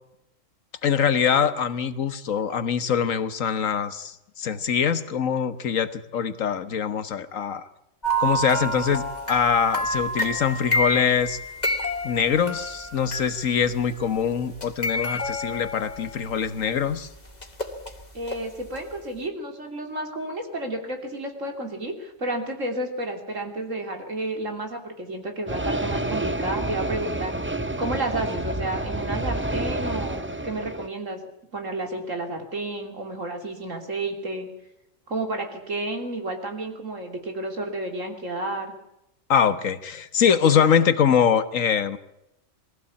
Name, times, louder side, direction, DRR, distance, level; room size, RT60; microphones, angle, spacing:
voice 1, 0.8-7.7 8.2-9.0 9.3-11.4 12.0-17.1 39.3-42.0, left 7 dB, 85° left, 12 dB, 1.6 m, -23 dB
sound 1, 8.0-13.9 14.5-16.6 17.4-18.4 18.7-18.8, equal, 30° left, 2.5 m, -28 dB
voice 2, 18.1-27.3 27.8-31.2 31.5-34.5 35.1-38.7, right 2 dB, 75° right, 4 dB, 3.4 m, -31 dB
sound 2, 25.5-30.9, right 2 dB, 15° right, 0.5 m, -29 dB
22.0 x 15.5 x 8.4 m, 0.84 s
omnidirectional pair, 1.3 m